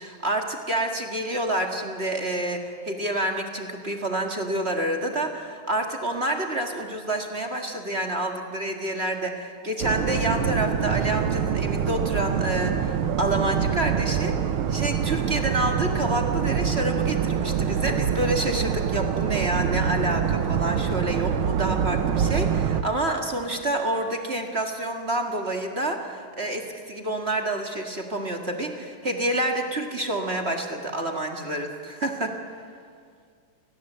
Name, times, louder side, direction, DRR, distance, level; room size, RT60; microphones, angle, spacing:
voice 1, 0.0-32.7, right 1 dB, 30° right, 3 dB, 1.2 m, -28 dB
sound 1, 9.8-22.8, right 8 dB, 75° right, 1.2 m, -25 dB
29.0 x 18.5 x 8.0 m, 2.1 s
omnidirectional pair, 3.7 m